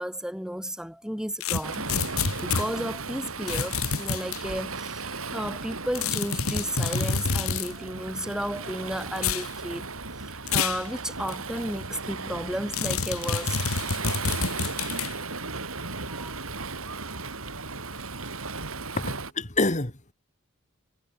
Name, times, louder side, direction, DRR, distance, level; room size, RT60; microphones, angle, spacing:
voice 1, 0.0-1.8 2.4-9.9 10.3-13.6 16.1-16.4 17.1-17.2, equal, 5° right, 4.6 m, -33 dB
sound 1, 1.4-2.7 3.5-4.4 5.9-7.7 9.2-9.5 10.5-10.8 11.3-11.4 12.7-15.1, left 5 dB, 90° left, 2.5 m, -28 dB
Waves surf, 1.6-19.3, right 4 dB, 75° right, 6.2 m, -36 dB
voice 2, 19.0-20.1, left 2 dB, 35° left, 2.9 m, -27 dB
head